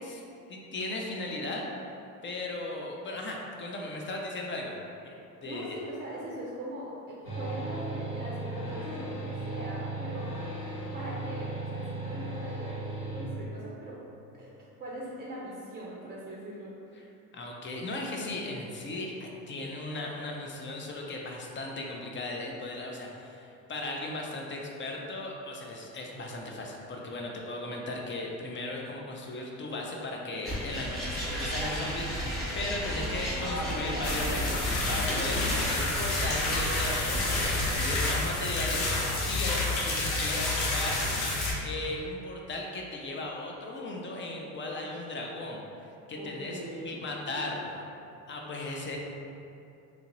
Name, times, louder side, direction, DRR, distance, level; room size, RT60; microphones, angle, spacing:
voice 1, 0.5-1.7 2.2-4.8 5.0-5.2 5.4-5.8 17.3-41.1 41.6-46.6 46.8-47.8 48.3-49.0, left 2 dB, 25° left, 0 dB, 0.5 m, -37 dB
voice 2, 5.4-10.3 10.9-14.0 14.4-14.5 14.8-16.7 32.7-33.7 46.1-47.0 48.5-48.6, right 1 dB, 20° right, -5 dB, 0.5 m, -41 dB
sound 1, 7.2-13.3, right 2 dB, 50° left, 1.2 m, -36 dB
sound 2, 30.4-37.7, equal, ahead, 1.0 m, -34 dB
sound 3, 34.0-41.5, left 2 dB, 75° left, 0.8 m, -29 dB
2.9 x 2.4 x 2.9 m, 2.7 s
hypercardioid pair, 60°, 45 cm